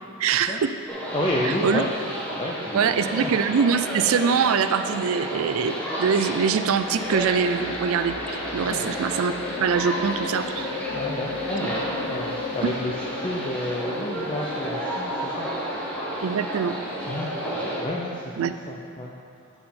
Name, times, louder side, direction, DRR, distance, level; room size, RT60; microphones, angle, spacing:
voice 1, 0.2-0.7 1.4-1.8 2.7-9.3 9.6-10.7 16.2-16.7 18.4-18.5, right 6 dB, 65° right, 11 dB, 0.4 m, -23 dB
sound 1, 0.9-17.8, equal, 5° left, 1.2 m, -32 dB
voice 2, 1.1-1.9 2.3-3.3 8.7-8.9 10.9-15.8 17.1-17.3 17.8-19.1, left 1 dB, 25° left, -3 dB, 0.5 m, -31 dB
sound 2, 3.5-3.7 6.2-17.6, left 2 dB, 90° left, 0.9 m, -43 dB
sound 3, 7.9-15.5, left 4 dB, 60° left, 0.8 m, -35 dB
9.8 x 5.6 x 4.3 m, 2.5 s
head